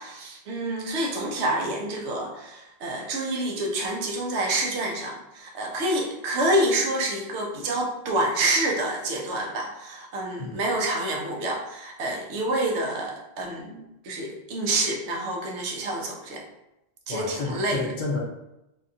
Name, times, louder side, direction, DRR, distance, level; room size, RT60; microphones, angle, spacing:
voice 1, 0.0-16.4 17.1-17.9, right 1 dB, 80° right, 0 dB, 0.9 m, -28 dB
voice 2, 17.1-18.2, left 3 dB, 55° left, -1 dB, 0.6 m, -30 dB
2.7 x 2.3 x 2.5 m, 0.88 s
omnidirectional pair, 1.1 m